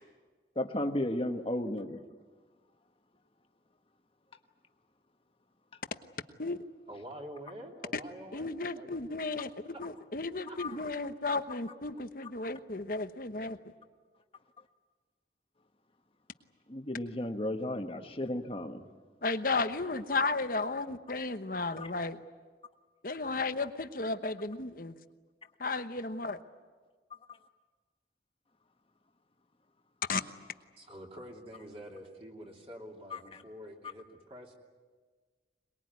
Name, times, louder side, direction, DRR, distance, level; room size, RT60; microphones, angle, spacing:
voice 1, 0.5-2.0 10.6-10.8 16.7-18.9 21.8-21.9 33.1-33.4, left 1 dB, 30° left, 6 dB, 1.4 m, -34 dB
voice 2, 6.9-9.0 10.5-10.6 30.8-34.5, equal, 35° right, 0 dB, 2.9 m, -47 dB
voice 3, 8.3-13.6 19.2-22.2 23.0-24.9 25.6-26.4 30.1-30.2, left 3 dB, 50° left, 10 dB, 1.1 m, -34 dB
23.0 x 21.5 x 9.6 m, 1.4 s
head